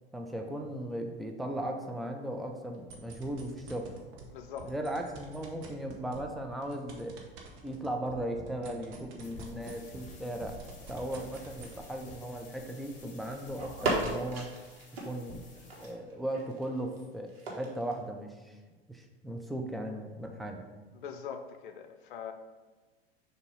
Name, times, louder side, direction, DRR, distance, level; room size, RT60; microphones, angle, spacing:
voice 1, 0.1-3.9 4.6-7.1 7.6-10.6 10.9-14.5 15.0-15.4 15.8-18.6 18.9-20.6, right 1 dB, ahead, 2 dB, 0.4 m, -37 dB
sound 1, 2.7-4.2 4.6-10.1 10.3-11.7, right 5 dB, 40° right, 1.1 m, -48 dB
voice 2, 4.3-4.7 20.9-22.3, left 7 dB, 55° left, 7 dB, 0.6 m, -42 dB
sound 2, 9.2-15.9, left 2 dB, 25° left, 1.4 m, -51 dB
sound 3, 9.8-12.3 12.6-13.2 13.5-18.0, right 2 dB, 65° right, 1.5 m, -38 dB
6.6 x 2.9 x 5.3 m, 1.3 s
figure-of-eight pair, 85°, 31 cm